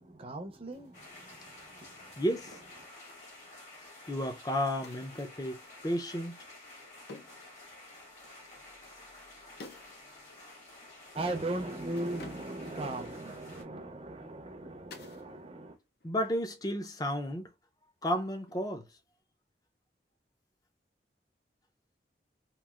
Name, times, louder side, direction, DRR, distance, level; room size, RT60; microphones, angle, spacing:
voice 1, 0.0-2.9 11.1-15.8, right 2 dB, 30° right, 0.6 m, -39 dB
sound 1, 0.7-0.9 2.5-2.8 4.8-5.4 7.1-7.5 9.6-10.0 10.3-10.4 11.9-12.8 14.9-15.3 15.6-16.2 18.5-18.9, left 3 dB, 60° left, 0.6 m, -51 dB
sound 2, 0.9-13.6, left 2 dB, 40° left, 1.3 m, -52 dB
voice 2, 2.2-2.5 4.1-6.4 16.0-17.5 18.0-18.8, equal, 20° left, 0.5 m, -32 dB
3.0 x 2.5 x 2.4 m
head